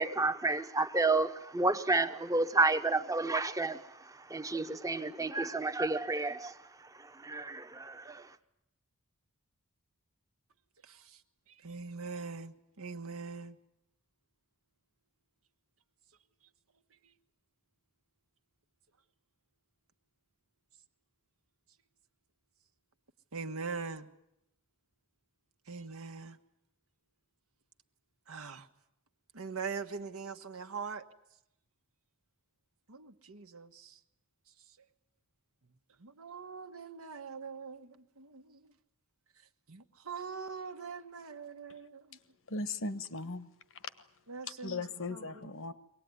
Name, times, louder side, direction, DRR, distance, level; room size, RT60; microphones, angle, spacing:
voice 1, 0.0-3.8 4.3-6.5 7.2-8.2, right 3 dB, 15° right, 1.1 m, -30 dB
voice 2, 10.8-11.2 11.5-13.6 23.3-24.1 25.7-26.4 28.3-28.7 29.3-31.0 32.9-34.0 36.0-38.7 39.7-42.2 44.3-45.5, right 5 dB, 65° right, 1.4 m, -42 dB
voice 3, 42.5-43.5 44.6-45.7, left 3 dB, 65° left, 1.2 m, -37 dB
24.0 x 18.5 x 9.6 m
head